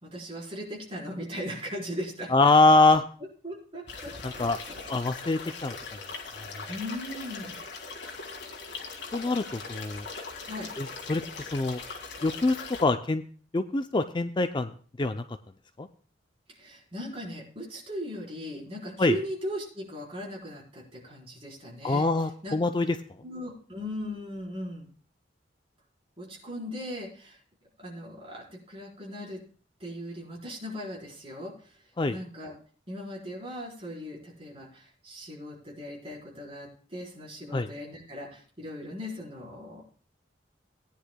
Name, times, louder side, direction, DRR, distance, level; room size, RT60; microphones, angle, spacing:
voice 1, 0.0-2.3 3.4-4.4 6.7-7.5 10.4-10.7 16.6-22.1 22.4-22.6 23.2-24.9 26.2-27.4 27.8-29.4 29.8-31.7 32.1-32.5 32.9-39.8, equal, 30° right, -4 dB, 4.2 m, -38 dB
voice 2, 2.3-3.0 4.2-4.6 4.9-5.7 6.4-6.6 9.1-10.1 10.8-11.8 12.2-12.6 12.8-13.2 13.5-14.7 15.0-15.2 15.8-15.9 19.0-19.2 21.8-23.0 32.0-32.2 37.5-37.7, left 2 dB, 25° left, 8 dB, 0.4 m, -24 dB
sound 1, 3.9-12.8, left 4 dB, 65° left, 2.0 m, -40 dB
19.0 x 9.9 x 2.2 m, 0.42 s
head